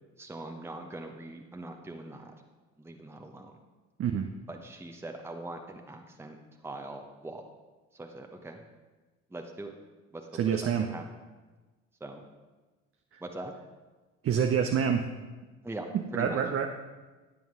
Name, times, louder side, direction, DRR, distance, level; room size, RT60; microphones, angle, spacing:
voice 1, 0.2-2.3 2.8-3.5 4.5-6.4 6.6-7.4 7.9-8.6 9.3-9.7 10.1-11.0 12.0-12.2 13.2-13.5 15.6-16.4, right 2 dB, 5° right, 3 dB, 1.0 m, -42 dB
voice 2, 4.0-4.3 10.3-10.9 13.1-13.2 14.2-15.1 15.9-16.7, right 7 dB, 35° right, 5 dB, 0.8 m, -27 dB
15.5 x 9.0 x 3.8 m, 1.2 s
figure-of-eight pair, 55°, 38 cm